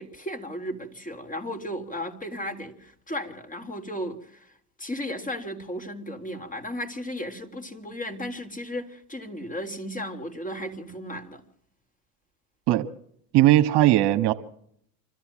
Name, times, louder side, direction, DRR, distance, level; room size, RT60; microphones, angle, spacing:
voice 1, 0.0-11.4, equal, 15° left, 3.5 m, -35 dB
voice 2, 13.3-14.3, right 14 dB, 60° right, 1.5 m, -18 dB
25.5 x 14.0 x 7.5 m
supercardioid pair, 85°, 45 cm